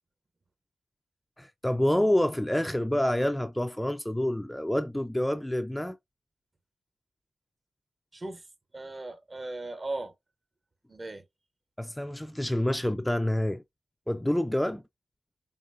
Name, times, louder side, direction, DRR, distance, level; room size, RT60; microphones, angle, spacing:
voice 1, 1.4-6.0 11.8-13.6 14.1-14.8, left 1 dB, 5° left, 0.4 m, -27 dB
voice 2, 8.1-8.4 8.7-10.1 10.9-11.2, right 2 dB, 40° right, 0.9 m, -37 dB
5.1 x 2.7 x 2.6 m
cardioid pair, 55°, 0 cm